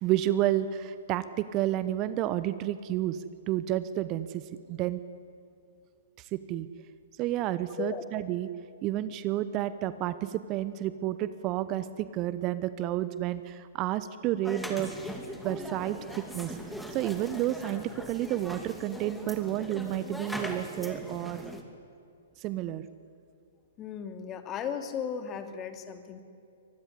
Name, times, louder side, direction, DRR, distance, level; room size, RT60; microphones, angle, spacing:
voice 1, 0.0-4.4 4.7-5.0 6.3-6.7 7.2-8.5 8.8-14.9 15.4-16.6 16.9-21.4 22.4-22.8, right 13 dB, 35° right, 14 dB, 0.9 m, -30 dB
sound 1, 14.4-21.6, equal, ahead, 2.6 m, -40 dB
voice 2, 23.8-26.2, left 7 dB, 25° left, 8 dB, 2.4 m, -36 dB
24.0 x 20.0 x 9.7 m, 2.5 s
figure-of-eight pair, 120°, 0 cm